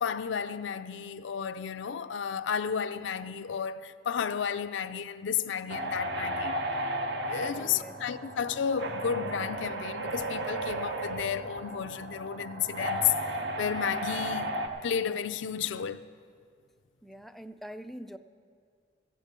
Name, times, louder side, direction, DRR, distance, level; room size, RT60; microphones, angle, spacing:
voice 1, 0.0-6.6 7.3-14.5 14.8-16.0, left 8 dB, 65° left, 0.4 m, -32 dB
sound 1, 5.7-14.7, right 1 dB, 65° right, 0.9 m, -34 dB
voice 2, 7.5-8.0 17.0-18.2, equal, ahead, 0.3 m, -44 dB
14.0 x 8.7 x 6.7 m
head